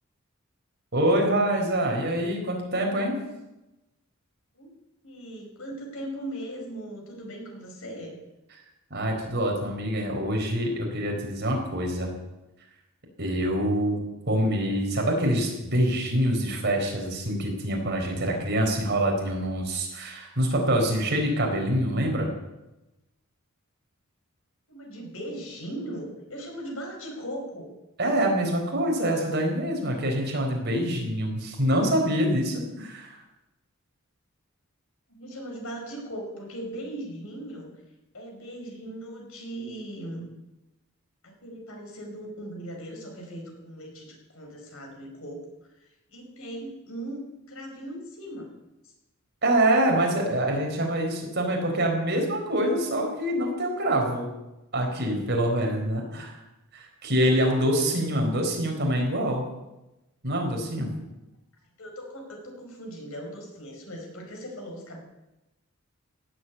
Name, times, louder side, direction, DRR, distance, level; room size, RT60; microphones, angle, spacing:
voice 1, 0.9-3.2 8.9-12.1 13.2-14.0 14.3-22.3 28.0-33.2 49.4-54.3 54.7-56.4 56.7-59.4 60.2-60.9, right 1 dB, 50° right, 1 dB, 4.3 m, -25 dB
voice 2, 5.0-8.2 24.7-27.7 35.1-37.7 38.1-40.3 41.2-45.4 45.7-48.5 48.8-48.9 61.8-65.0, right 1 dB, 70° left, 1 dB, 5.2 m, -39 dB
17.5 x 8.6 x 8.6 m, 0.98 s
head